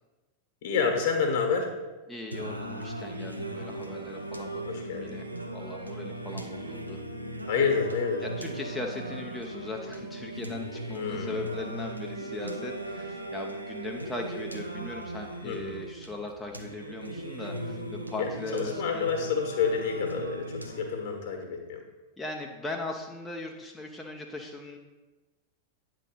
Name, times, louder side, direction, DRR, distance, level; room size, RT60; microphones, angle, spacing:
voice 1, 0.6-1.7 4.7-5.2 7.5-8.2 10.9-11.5 15.4-15.7 18.2-21.8, left 5 dB, 55° left, 3 dB, 1.5 m, -29 dB
voice 2, 2.1-7.0 8.2-19.1 22.2-24.8, left 2 dB, 10° left, 0 dB, 0.7 m, -39 dB
Singing, 2.3-21.3, right 1 dB, 90° right, 0.6 m, -38 dB
9.1 x 3.8 x 5.5 m, 1.2 s
figure-of-eight pair, 90°, 0 cm